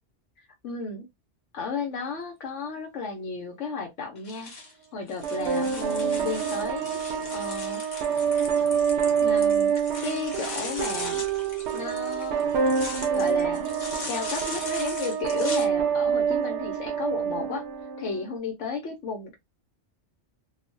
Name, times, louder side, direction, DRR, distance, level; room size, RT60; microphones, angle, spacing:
voice 1, 0.6-1.1 1.5-4.5 4.9-7.0 7.3-7.8 9.2-9.7 10.0-11.2 11.7-12.4 13.1-13.7 14.1-17.6 18.0-19.3, left 4 dB, 85° left, 1.1 m, -33 dB
sound 1, 4.2-15.7, left 3 dB, 45° left, 0.8 m, -39 dB
sound 2, 5.2-18.3, right 7 dB, 70° right, 0.8 m, -26 dB
3.0 x 2.1 x 2.5 m
omnidirectional pair, 1.2 m